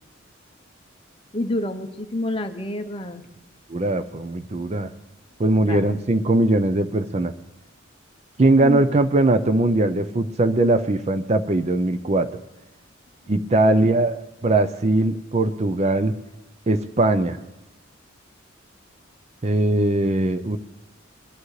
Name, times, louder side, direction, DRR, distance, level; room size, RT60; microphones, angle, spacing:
voice 1, 1.3-3.2 5.6-5.8 8.6-8.8 13.6-13.8, left 1 dB, 25° left, 7 dB, 0.8 m, -28 dB
voice 2, 3.7-4.9 5.4-7.3 8.4-12.4 13.3-16.1 16.7-17.4 19.4-20.6, right 2 dB, 35° right, 10 dB, 0.5 m, -20 dB
21.5 x 12.0 x 3.2 m, 0.93 s
head